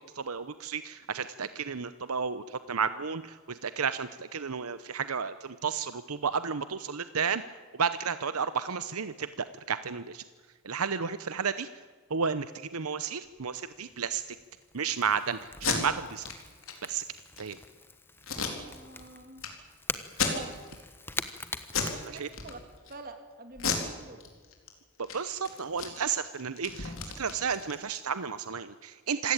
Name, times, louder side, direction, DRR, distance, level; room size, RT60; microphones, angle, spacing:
voice 1, 0.2-7.4 7.8-10.2 10.6-11.7 12.1-14.2 14.7-16.3 16.8-17.0 17.4-17.6 22.1-22.3 25.1-29.3, right 6 dB, 80° right, 13 dB, 0.8 m, -32 dB
Crackle / Crack, 13.2-22.8, left 3 dB, 10° left, 1.2 m, -44 dB
Packing tape duct tape, 15.5-15.8 16.2-16.3 16.6-16.7 17.2-17.5 18.2-19.0 19.4-19.5 20.1-20.8 21.1-21.4 21.7-22.0 22.3-22.9 23.5-24.7 25.0-25.2 25.4-28.1, left 6 dB, 65° left, 4.2 m, -33 dB
voice 2, 18.5-19.4 20.2-20.6 22.1-22.6 22.9-24.2, right 2 dB, 40° right, 6 dB, 3.1 m, -45 dB
27.0 x 16.5 x 8.9 m, 1.5 s
head